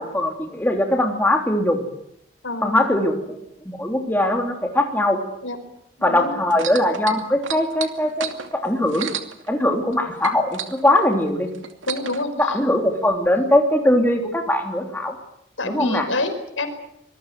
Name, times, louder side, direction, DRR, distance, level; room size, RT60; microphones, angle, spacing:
voice 1, 0.0-1.8 2.6-3.4 3.6-5.2 6.0-9.1 9.5-11.5 12.4-15.1 15.6-16.1, left 1 dB, 10° left, 2 dB, 3.2 m, -21 dB
voice 2, 2.4-2.8 5.4-5.6 6.0-6.3 11.9-12.6 15.6-16.7, left 2 dB, 85° left, 8 dB, 4.9 m, -27 dB
sound 1, 6.5-10.0 10.2-12.2 13.0-13.1, right 7 dB, 85° right, 2.6 m, -31 dB
25.5 x 21.5 x 7.8 m, 0.74 s
head